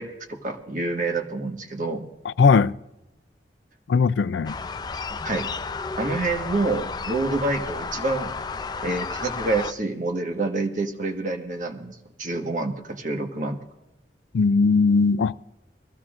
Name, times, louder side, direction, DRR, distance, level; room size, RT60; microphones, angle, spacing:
voice 1, 0.0-2.0 5.2-5.5 6.0-8.3 8.8-13.6, right 2 dB, 45° right, 1.5 m, -27 dB
voice 2, 2.2-2.8 3.9-4.6 14.3-15.5, left 4 dB, 90° left, 0.4 m, -19 dB
sound 1, 4.5-9.7, left 4 dB, 25° left, 0.4 m, -32 dB
22.5 x 15.5 x 2.5 m
head